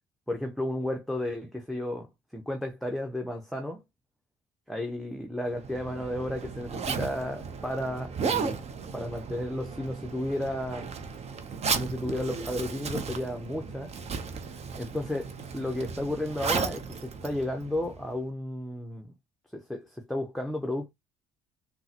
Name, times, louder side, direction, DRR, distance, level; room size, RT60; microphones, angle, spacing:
voice 1, 0.3-3.8 4.7-8.6 8.9-10.9 11.8-13.9 14.8-19.1 19.5-20.9, left 1 dB, ahead, 0.6 m, -33 dB
Zipper (clothing), 5.5-18.2, right 5 dB, 45° right, 0.7 m, -35 dB
3.7 x 2.1 x 2.7 m
hypercardioid pair, 65°, 16 cm